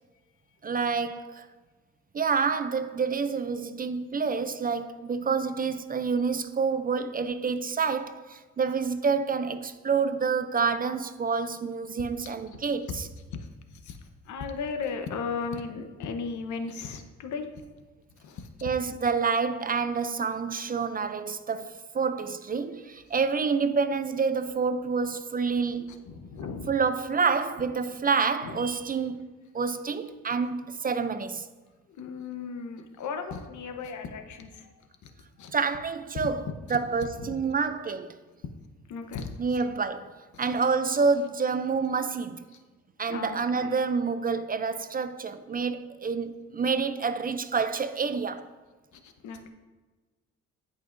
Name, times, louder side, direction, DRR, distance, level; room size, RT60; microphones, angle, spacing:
voice 1, 0.6-1.5 2.1-13.1 18.6-26.0 26.7-31.5 35.5-36.4 36.7-38.2 39.4-42.5 43.0-48.5, right 5 dB, 30° right, 0.4 m, -28 dB
voice 2, 13.3-17.7 18.2-18.5 23.1-23.2 25.9-26.7 28.4-28.7 31.9-35.5 36.7-37.4 38.9-39.6 40.3-40.6 42.5-42.6 43.1-43.8 48.9-49.5, left 5 dB, 75° left, 1.0 m, -37 dB
15.0 x 5.5 x 2.6 m
cardioid pair, 90°, 30 cm